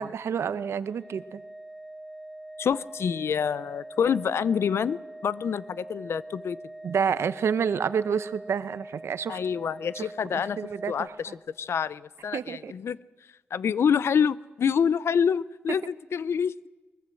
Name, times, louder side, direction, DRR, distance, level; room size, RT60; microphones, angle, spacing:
voice 1, 0.0-1.4 6.8-9.4 9.9-11.2 12.3-12.7, right 7 dB, 80° right, 14 dB, 0.9 m, -29 dB
Organ, 0.8-11.5, right 1 dB, 25° left, 5.9 m, -44 dB
voice 2, 2.6-6.6 9.3-10.6 10.9-11.3 11.6-13.0 13.5-16.5, left 7 dB, 75° left, 18 dB, 0.6 m, -27 dB
22.0 x 22.0 x 7.7 m, 1.2 s
cardioid pair, 80°, 4 cm